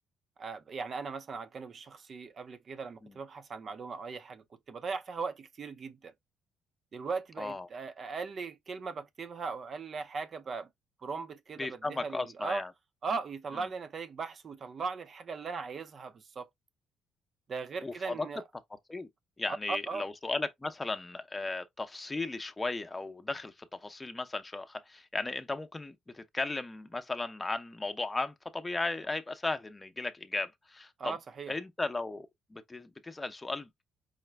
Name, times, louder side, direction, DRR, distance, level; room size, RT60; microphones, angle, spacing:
voice 1, 0.4-6.1 6.9-10.7 11.0-12.6 13.0-16.5 17.5-18.4 19.7-20.1 31.0-31.5, right 4 dB, 50° right, 0.6 m, -38 dB
voice 2, 7.4-7.7 11.6-12.7 17.8-18.3 18.9-19.1 19.4-31.2 31.5-33.8, left 3 dB, 20° left, 0.6 m, -36 dB
4.9 x 2.1 x 3.3 m
cardioid pair, 90°, 0 cm